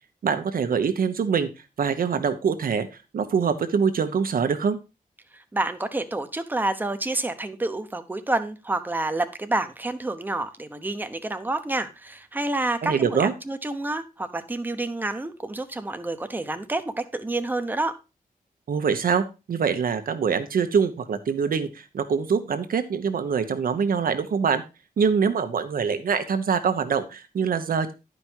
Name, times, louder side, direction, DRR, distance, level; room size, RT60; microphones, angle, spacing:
voice 1, 0.2-1.5 1.8-2.9 3.1-4.8 12.8-13.3 18.7-24.6 25.0-27.9, right 6 dB, 75° right, 9 dB, 1.2 m, -24 dB
voice 2, 5.3-17.9, right 2 dB, 15° right, 8 dB, 0.9 m, -28 dB
11.0 x 5.3 x 4.5 m, 0.28 s
wide cardioid pair, 150°, 15 cm